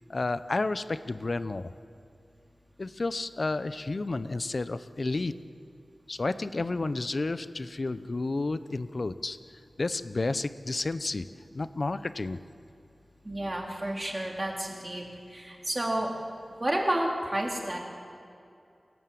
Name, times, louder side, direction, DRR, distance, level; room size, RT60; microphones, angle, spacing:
voice 1, 0.1-1.7 2.8-5.3 6.1-9.4 9.8-11.3 11.5-12.4, left 3 dB, 55° left, 13 dB, 0.8 m, -31 dB
voice 2, 13.2-15.0 15.3-16.1 16.6-17.8, right 1 dB, 30° right, -1 dB, 3.7 m, -30 dB
29.0 x 17.5 x 7.8 m, 2.6 s
wide cardioid pair, 80°, 0 cm